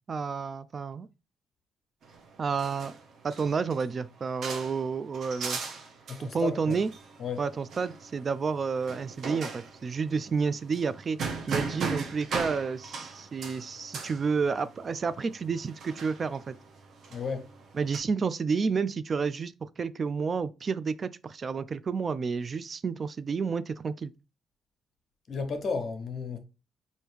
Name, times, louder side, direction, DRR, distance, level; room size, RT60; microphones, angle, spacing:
voice 1, 0.1-1.1 2.4-2.9 3.2-5.6 6.2-6.9 7.4-11.2 11.5-16.6 17.7-24.1, right 5 dB, 40° right, 0.3 m, -30 dB
sound 1, 2.0-18.0, right 5 dB, 65° right, 0.9 m, -39 dB
voice 2, 6.1-6.8 7.2-7.5 17.1-17.5 25.3-26.4, left 5 dB, 50° left, 1.0 m, -33 dB
4.5 x 2.7 x 3.4 m
cardioid pair, 90°, 0 cm